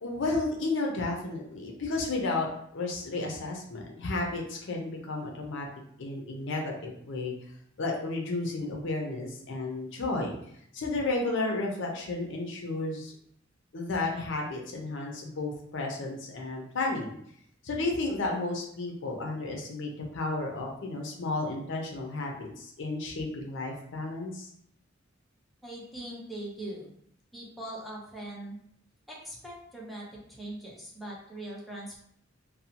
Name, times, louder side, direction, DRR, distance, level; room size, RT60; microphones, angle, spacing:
voice 1, 0.0-5.7 6.0-7.3 7.8-10.3 10.7-13.1 13.7-17.1 17.6-24.5, left 2 dB, 65° left, 0 dB, 0.5 m, -32 dB
voice 2, 25.6-26.9 27.3-28.6 29.1-32.0, right 1 dB, ahead, -5 dB, 0.6 m, -41 dB
2.6 x 2.1 x 2.8 m, 0.69 s
head